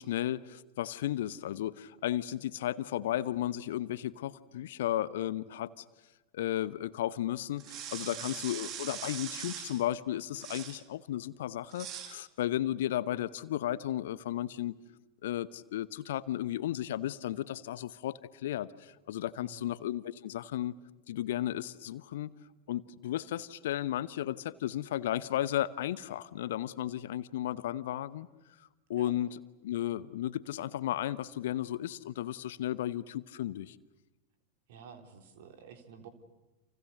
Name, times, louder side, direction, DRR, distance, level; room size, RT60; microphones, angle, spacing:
voice 1, 0.0-5.8 6.3-14.7 15.2-20.7 21.1-22.3 22.7-28.3 28.9-29.3 29.6-33.7, left 12 dB, 55° left, 17 dB, 0.9 m, -34 dB
sound 1, 7.6-9.8 10.4-10.8 11.7-12.2, right 9 dB, 35° right, 2.2 m, -41 dB
voice 2, 8.1-8.4 19.4-19.8 29.0-29.1 34.7-36.1, right 7 dB, 55° right, 6 dB, 3.5 m, -51 dB
30.0 x 28.5 x 6.7 m, 1.1 s
figure-of-eight pair, 90°, 0 cm